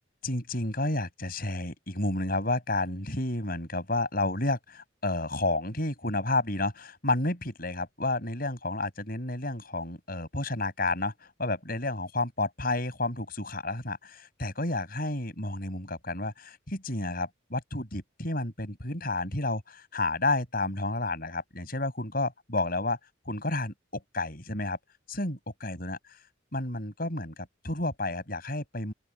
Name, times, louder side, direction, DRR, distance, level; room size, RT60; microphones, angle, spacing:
voice 1, 0.2-23.0 23.2-24.8 25.1-26.2 26.5-28.9, left 2 dB, 45° left, 6.8 m, -31 dB
open air
head